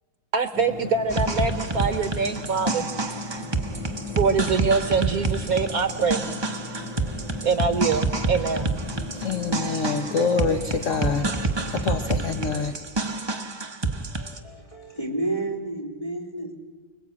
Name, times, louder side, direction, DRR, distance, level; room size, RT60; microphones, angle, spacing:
voice 1, 0.3-2.9 4.1-6.3 7.4-8.8, right 5 dB, 60° right, 1.3 m, -24 dB
sound 1, 0.5-12.6, left 2 dB, 90° left, 6.0 m, -37 dB
sound 2, 1.1-14.4, right 3 dB, 20° right, 0.7 m, -28 dB
voice 2, 9.1-11.3 11.7-12.7, left 5 dB, 50° left, 1.2 m, -26 dB
voice 3, 13.9-16.5, right 2 dB, 20° left, 3.8 m, -32 dB
25.0 x 21.5 x 8.5 m
omnidirectional pair, 1.9 m